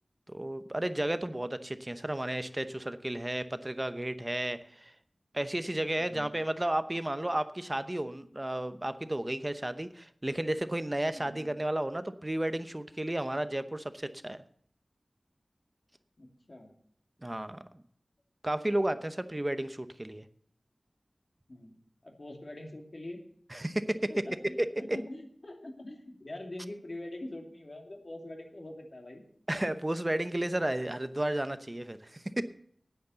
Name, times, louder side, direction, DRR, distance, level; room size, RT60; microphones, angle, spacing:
voice 1, 0.3-4.9 5.3-14.4 17.2-17.6 18.4-20.2 23.5-24.1 24.6-25.0 29.5-32.4, right 1 dB, 25° right, 11 dB, 0.8 m, -33 dB
voice 2, 6.0-6.3 11.2-11.4 16.2-16.7 21.5-21.7 22.0-23.2 24.1-29.2, left 1 dB, 50° left, 2 dB, 2.6 m, -44 dB
9.5 x 9.5 x 7.0 m, 0.65 s
wide cardioid pair, 70°, 0 cm